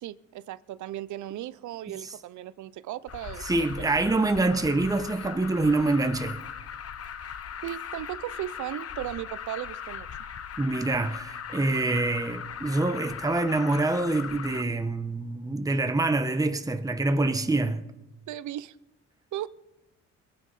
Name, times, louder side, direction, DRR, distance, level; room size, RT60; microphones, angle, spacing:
voice 1, 0.0-3.7 7.6-10.1 18.3-18.8 19.3-19.5, right 13 dB, 75° right, 0.6 m, -36 dB
Alarm, 3.1-14.6, left 8 dB, 55° left, 1.1 m, -39 dB
voice 2, 3.4-6.4 10.6-17.8, right 2 dB, 10° right, 1.0 m, -26 dB
22.0 x 8.8 x 5.5 m
cardioid pair, 90°, 30 cm